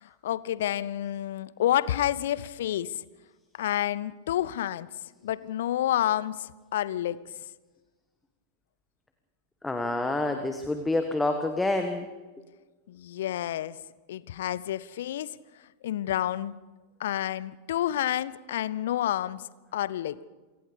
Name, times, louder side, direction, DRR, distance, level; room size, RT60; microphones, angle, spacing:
voice 1, 0.0-2.9 3.6-4.9 5.2-7.2 12.9-13.8 14.1-15.4 15.8-16.5 17.0-19.4 19.7-20.2, left 12 dB, 60° left, 19 dB, 0.7 m, -29 dB
voice 2, 9.6-12.1, left 2 dB, 10° left, 6 dB, 1.6 m, -27 dB
28.0 x 18.5 x 5.3 m, 1.3 s
figure-of-eight pair, 90°, 0 cm